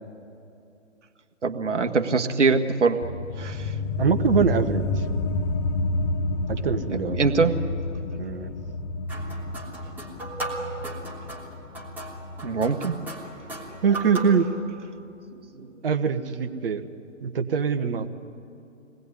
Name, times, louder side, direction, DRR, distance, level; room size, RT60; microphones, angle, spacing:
voice 1, 1.4-3.0 3.4-3.7 7.2-7.6 12.4-13.3 15.4-15.5, right 4 dB, 65° right, 7 dB, 1.8 m, -23 dB
sound 1, 3.0-14.1, left 2 dB, 15° left, 0.6 m, -30 dB
voice 2, 4.0-5.0 6.5-7.2 8.2-8.5 13.8-14.5 15.8-16.8 17.2-18.1, right 6 dB, 45° right, 8 dB, 1.5 m, -23 dB
sound 2, 9.1-14.5, right 2 dB, 5° right, 3.3 m, -37 dB
26.0 x 20.0 x 9.7 m, 2.7 s
figure-of-eight pair, 135°, 38 cm